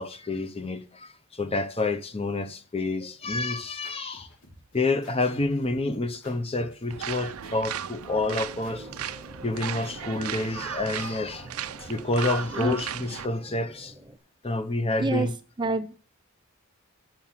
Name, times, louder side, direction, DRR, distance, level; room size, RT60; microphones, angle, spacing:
voice 1, 0.0-4.3 4.7-8.9 9.4-11.5 11.8-13.9 14.4-15.4, left 2 dB, 25° left, 0.8 m, -28 dB
sound 1, 3.2-12.8, left 1 dB, 75° left, 6.4 m, -54 dB
sound 2, 6.9-13.3, right 9 dB, 80° right, 0.6 m, -36 dB
sound 3, 8.5-14.2, equal, 5° right, 1.1 m, -48 dB
voice 2, 15.6-16.0, right 3 dB, 20° right, 0.4 m, -27 dB
7.9 x 6.0 x 7.3 m
head